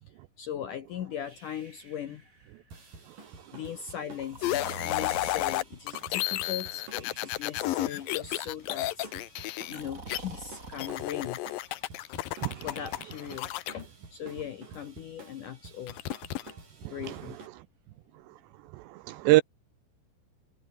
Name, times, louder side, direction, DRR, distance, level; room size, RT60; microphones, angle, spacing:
voice 1, 0.4-2.2 3.5-9.1 9.7-11.4 12.6-16.2 16.9-17.4, left 9 dB, 70° left, 2.0 m, -39 dB
Breathing, 1.2-2.8 4.2-5.8 6.9-7.8 9.6-11.1 12.4-13.6, right 2 dB, 15° right, 6.1 m, -47 dB
sound 1, 2.7-17.5, right 4 dB, 45° right, 8.9 m, -50 dB
sound 2, 4.4-10.2 10.8-13.7 15.9-16.5, left 16 dB, 90° left, 2.0 m, -32 dB
voice 2, 16.9-17.4 18.7-19.4, right 20 dB, 80° right, 2.5 m, -26 dB
omnidirectional pair, 5.5 m